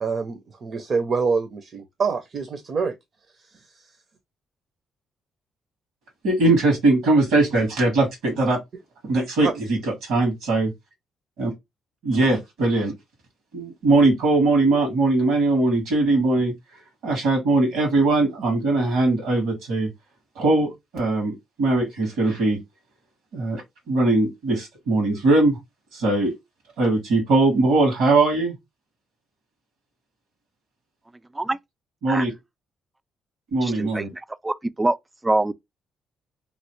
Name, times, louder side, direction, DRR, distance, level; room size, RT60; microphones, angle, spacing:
voice 1, 0.0-2.9 9.4-9.6, right 5 dB, 50° right, 0.6 m, -26 dB
voice 2, 6.2-8.6 9.0-10.7 11.4-11.5 12.0-12.9 13.5-16.5 17.0-19.9 20.4-22.6 23.3-25.6 25.9-26.3 26.8-28.6 32.0-32.3 33.5-34.1, right 2 dB, 90° right, 1.7 m, -20 dB
voice 3, 33.6-35.0 35.2-35.5, right 2 dB, 15° right, 0.3 m, -24 dB
3.1 x 2.8 x 3.1 m
cardioid pair, 90°, 0 cm